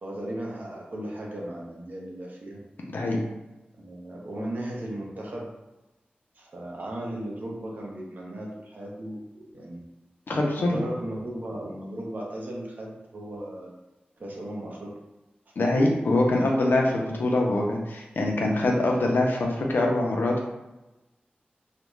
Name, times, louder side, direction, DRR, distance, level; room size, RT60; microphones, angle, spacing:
voice 1, 0.0-2.6 3.8-5.5 6.3-9.8 10.5-13.7 14.2-15.0 15.6-16.3, right 1 dB, 60° right, -2 dB, 0.6 m, -36 dB
voice 2, 10.3-10.8 15.6-20.5, left 2 dB, 75° left, 0 dB, 0.5 m, -24 dB
2.4 x 2.1 x 3.0 m, 1.0 s
wide cardioid pair, 110°, 3 cm